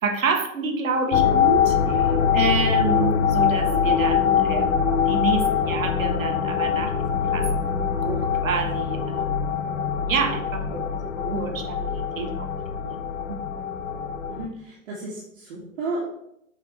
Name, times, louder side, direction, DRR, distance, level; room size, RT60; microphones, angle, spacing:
voice 1, 0.0-7.6 8.0-9.3 10.1-10.8 11.1-12.5 12.8-13.4, right 4 dB, 70° right, 5 dB, 1.3 m, -28 dB
sound 1, 1.1-14.5, left 7 dB, 60° left, 0.8 m, -23 dB
voice 2, 14.3-16.0, right 2 dB, 50° right, -5 dB, 2.0 m, -33 dB
7.4 x 5.2 x 3.3 m, 0.77 s
figure-of-eight pair, 110°, 42 cm